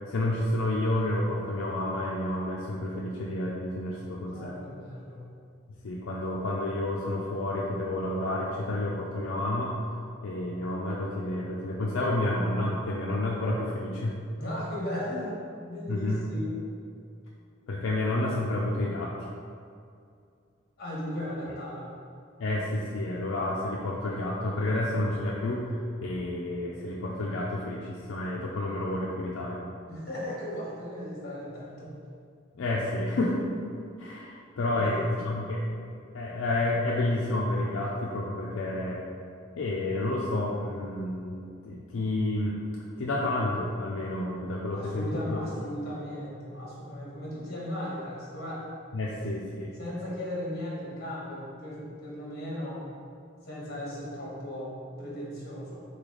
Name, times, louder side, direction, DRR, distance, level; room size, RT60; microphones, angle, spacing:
voice 1, 0.1-4.5 5.8-9.7 10.2-14.2 15.9-16.2 17.7-19.3 22.4-29.6 32.5-33.5 34.0-35.6 36.1-39.0 39.6-41.4 41.6-42.6 43.0-45.4 48.9-49.7, left 1 dB, 80° left, -4 dB, 0.4 m, -30 dB
voice 2, 4.3-5.2 14.4-15.4 15.7-16.6 20.8-21.9 29.9-31.9 34.8-35.0 44.7-48.6 49.8-52.8 53.4-55.8, left 1 dB, 50° left, -5 dB, 1.3 m, -36 dB
4.0 x 3.3 x 3.8 m, 2.4 s
head